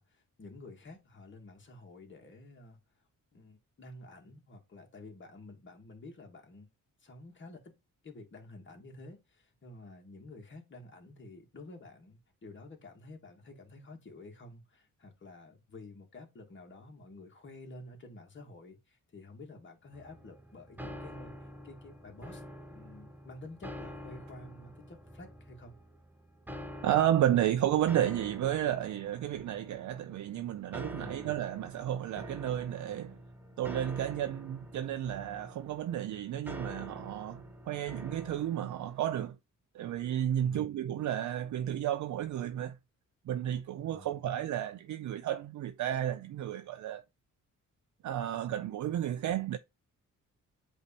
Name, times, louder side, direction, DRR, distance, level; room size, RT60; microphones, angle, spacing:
voice 1, 0.0-2.8 3.3-6.7 7.0-7.7 8.0-22.4 22.7-25.7 30.9-31.2 40.4-40.7 43.9-44.2, left 2 dB, 35° left, 1.6 m, -50 dB
sound 1, 19.9-39.0, equal, 5° right, 0.7 m, -47 dB
voice 2, 26.8-33.2 33.6-39.4 39.7-42.8 43.3-47.0 48.0-49.6, right 11 dB, 65° right, 0.4 m, -32 dB
8.1 x 2.8 x 4.2 m
wide cardioid pair, 140°, 32 cm